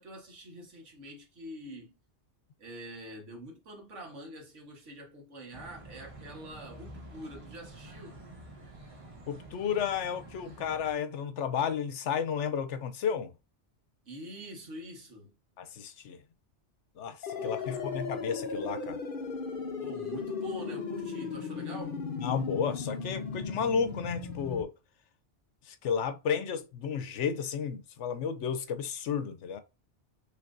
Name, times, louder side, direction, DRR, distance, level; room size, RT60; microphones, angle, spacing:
voice 1, 0.0-2.0 2.6-8.2 14.1-15.3 17.4-18.0 19.8-22.0, right 1 dB, 85° right, 1.8 m, -45 dB
sound 1, 5.5-10.9, right 2 dB, 30° right, 1.1 m, -49 dB
voice 2, 9.3-13.3 15.6-16.2 17.0-19.0 22.2-24.7 25.7-29.6, left 7 dB, 80° left, 1.0 m, -32 dB
sound 2, 17.2-24.6, left 5 dB, 50° left, 0.9 m, -36 dB
5.8 x 3.2 x 2.6 m
omnidirectional pair, 1.2 m